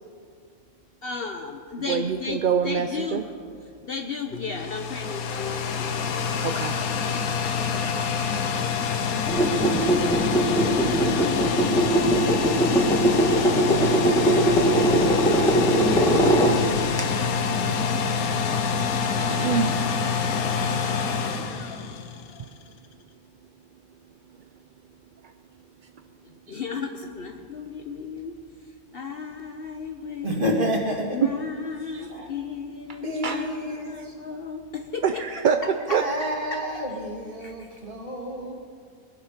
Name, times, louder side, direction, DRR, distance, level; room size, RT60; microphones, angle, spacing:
voice 1, 1.0-3.2 3.8-6.8 26.5-28.4 28.9-30.5 31.1-35.2 36.2-36.6 37.4-37.7, left 5 dB, 50° left, 5 dB, 0.9 m, -35 dB
voice 2, 1.9-3.2 6.4-6.8 17.1-17.2 17.5-17.8 19.3-20.0 20.7-20.8 31.2-31.3 31.9-32.1 33.2-33.5 35.0-36.0, right 7 dB, 60° right, 7 dB, 0.5 m, -25 dB
sound 1, 4.3-22.4, left 6 dB, 90° left, 1.3 m, -26 dB
sound 2, 9.3-17.0, right 1 dB, 5° left, 1.4 m, -21 dB
voice 3, 30.2-31.2 32.1-32.3 33.0-34.1 35.9-38.5, equal, 35° right, -1 dB, 2.4 m, -29 dB
21.0 x 11.0 x 5.1 m, 2.2 s
omnidirectional pair, 1.5 m